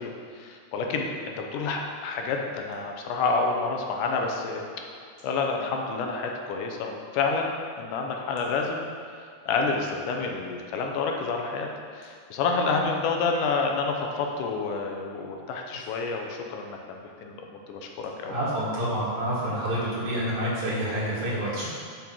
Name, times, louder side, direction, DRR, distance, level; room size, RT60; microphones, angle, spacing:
voice 1, 0.0-4.6 5.2-8.9 9.5-18.5, left 4 dB, 80° left, 2 dB, 2.3 m, -29 dB
voice 2, 18.3-21.7, equal, 60° right, -7 dB, 3.2 m, -28 dB
7.1 x 5.3 x 6.1 m, 2.3 s
omnidirectional pair, 3.7 m